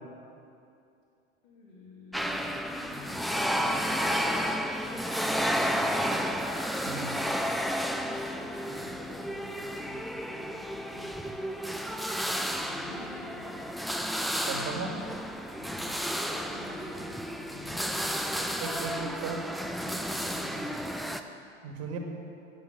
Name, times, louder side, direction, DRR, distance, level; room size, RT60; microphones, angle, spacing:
voice 1, 1.4-6.5 7.8-11.4 11.9-13.7 15.5-18.6 20.2-20.9, left 2 dB, 60° left, -4 dB, 3.1 m, -48 dB
sound 1, 2.1-21.2, equal, ahead, 0.4 m, -32 dB
voice 2, 6.9-7.2 14.4-15.0 18.4-19.5 21.6-22.0, right 4 dB, 45° right, 2 dB, 2.0 m, -36 dB
11.0 x 7.8 x 7.5 m, 2.6 s
hypercardioid pair, 95°, 35 cm